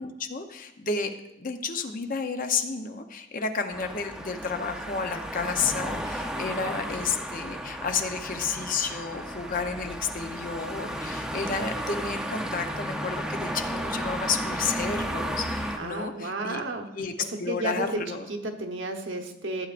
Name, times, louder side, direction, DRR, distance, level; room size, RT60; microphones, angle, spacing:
voice 1, 0.0-16.6 16.9-18.3, left 5 dB, 40° left, 6 dB, 0.7 m, -31 dB
sound 1, 3.7-15.8, equal, 5° right, 0.6 m, -33 dB
voice 2, 15.8-19.7, right 2 dB, 65° right, 4 dB, 1.1 m, -33 dB
15.0 x 8.8 x 2.5 m, 0.90 s
head